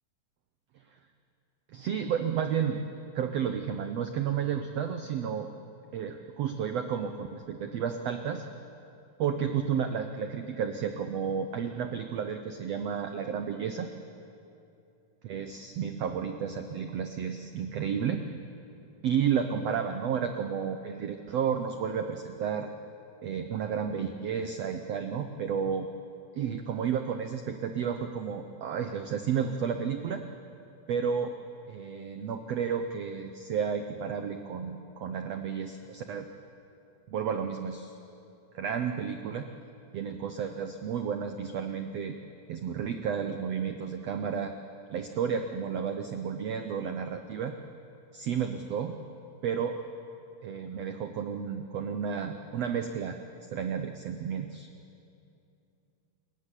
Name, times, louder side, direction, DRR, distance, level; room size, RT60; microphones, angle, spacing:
voice 1, 1.7-2.8 3.1-5.5 5.9-8.5 9.2-13.9 15.2-18.2 19.0-22.7 23.2-25.9 26.4-30.2 30.9-31.3 31.7-36.3 37.1-37.9 38.5-39.4 39.9-42.1 42.5-44.5 44.9-47.5 48.1-49.0 49.4-49.8 50.4-53.2 53.5-54.7, right 7 dB, 85° right, 7 dB, 1.4 m, -32 dB
27.5 x 15.0 x 9.9 m, 2.7 s
omnidirectional pair, 4.2 m